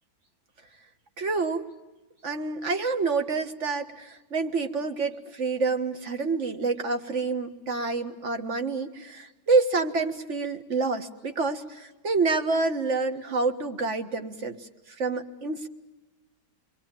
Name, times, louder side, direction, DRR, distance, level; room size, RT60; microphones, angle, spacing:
voice 1, 1.2-1.7 2.2-14.6 15.0-15.7, right 4 dB, 45° right, 6 dB, 1.8 m, -27 dB
27.0 x 22.5 x 8.9 m, 1.1 s
omnidirectional pair, 1.8 m